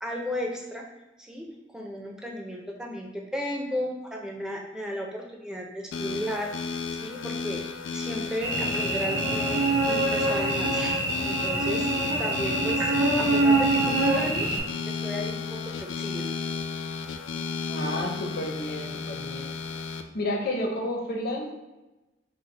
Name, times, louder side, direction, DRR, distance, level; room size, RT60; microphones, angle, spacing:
voice 1, 0.0-0.8 1.2-1.5 1.7-7.7 7.9-11.9 12.2-12.9 13.2-14.5 14.9-16.3, equal, 5° right, 0 dB, 0.5 m, -34 dB
sound 1, 5.9-20.0, left 5 dB, 75° left, 0.3 m, -34 dB
Cricket / Buzz, 8.4-14.6, right 2 dB, 70° right, 1.0 m, -25 dB
voice 2, 17.7-19.5 20.1-21.5, left 1 dB, 55° left, 0 dB, 0.7 m, -31 dB
5.2 x 2.1 x 3.3 m, 1.0 s
head